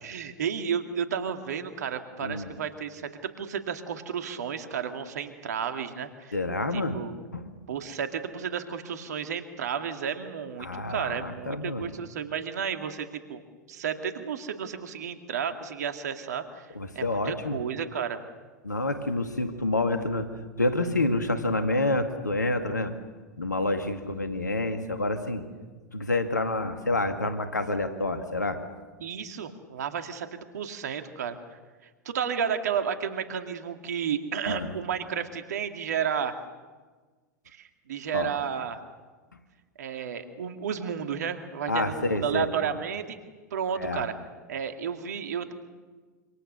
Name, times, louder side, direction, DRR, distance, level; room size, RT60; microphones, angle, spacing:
voice 1, 0.0-6.3 6.7-7.1 7.7-13.4 13.7-18.2 29.0-31.4 32.0-36.4 37.5-38.8 39.8-43.2 43.5-44.1 44.5-45.5, right 7 dB, 70° right, 7 dB, 2.4 m, -32 dB
voice 2, 2.2-2.5 6.3-7.0 7.3-7.4 10.6-11.9 16.7-17.6 18.6-20.3 20.6-22.9 23.4-25.5 25.9-28.6 34.5-34.7 38.1-38.3 41.7-42.5 43.8-44.0, left 2 dB, 90° left, 8 dB, 2.1 m, -28 dB
27.0 x 26.5 x 6.8 m, 1.4 s
figure-of-eight pair, 90°, 9 cm